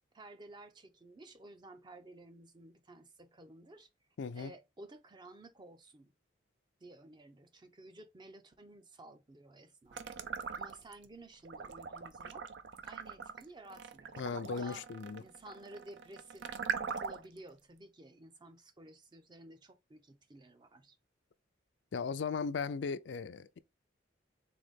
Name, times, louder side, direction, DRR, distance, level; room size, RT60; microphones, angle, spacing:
voice 1, 0.1-3.9 4.3-6.1 6.8-12.5 12.8-14.9 15.2-16.5 16.9-21.0, right 2 dB, 25° right, 0.5 m, -54 dB
voice 2, 4.2-4.5 14.2-15.2 21.9-23.6, left 5 dB, 70° left, 0.4 m, -37 dB
sound 1, 9.9-11.0 11.4-17.4, right 6 dB, 65° right, 0.5 m, -41 dB
3.9 x 3.5 x 3.5 m
head